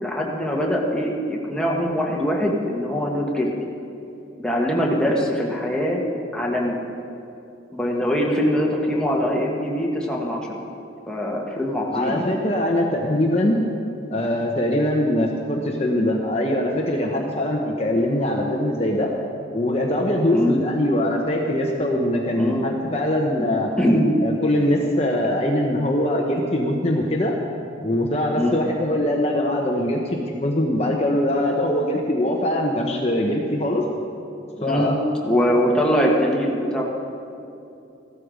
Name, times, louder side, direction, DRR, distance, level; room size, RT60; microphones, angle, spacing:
voice 1, 0.0-3.5 4.4-6.0 6.3-6.8 7.7-10.6 11.1-12.3 17.2-17.3 20.3-20.5 22.3-22.7 23.8-24.1 28.3-28.6 34.6-34.9 35.2-36.8, equal, 5° left, -2 dB, 1.5 m, -22 dB
voice 2, 11.9-13.6 14.1-19.1 19.5-23.7 24.2-27.4 27.8-33.8 34.6-35.0 35.9-36.1, left 1 dB, 30° left, 0 dB, 1.0 m, -22 dB
15.5 x 13.0 x 5.1 m, 2.7 s
head